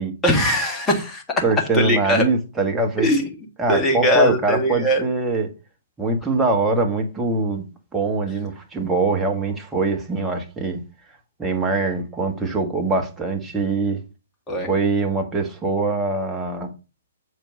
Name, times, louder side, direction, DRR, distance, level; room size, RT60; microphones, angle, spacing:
voice 1, 0.2-1.2 1.7-2.2 3.0-3.2 3.7-5.0 14.5-14.7, equal, 15° left, 1.9 m, -20 dB
voice 2, 1.4-3.1 3.6-5.5 6.0-7.7 7.9-10.8 11.4-14.0 14.7-16.7, right 3 dB, 10° right, 1.5 m, -23 dB
7.4 x 4.7 x 5.1 m
figure-of-eight pair, 120°, 0 cm